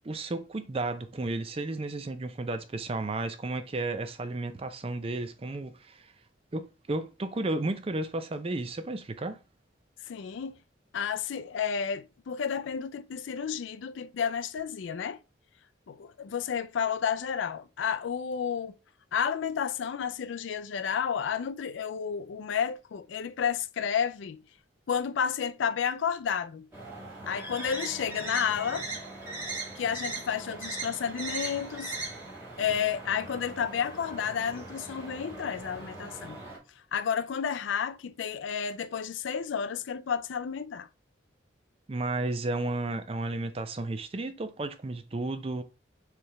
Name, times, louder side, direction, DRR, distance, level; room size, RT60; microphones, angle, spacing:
voice 1, 0.0-6.0 6.5-9.4 41.9-45.6, right 2 dB, 30° right, 0.4 m, -33 dB
voice 2, 10.1-10.5 10.9-15.2 15.9-18.8 19.1-24.4 24.9-26.7 27.2-28.9 29.8-32.0 32.6-36.4 36.9-40.9, left 7 dB, 75° left, 0.4 m, -31 dB
sound 1, 26.7-36.6, right 3 dB, 10° right, 1.9 m, -39 dB
4.6 x 3.3 x 3.1 m
head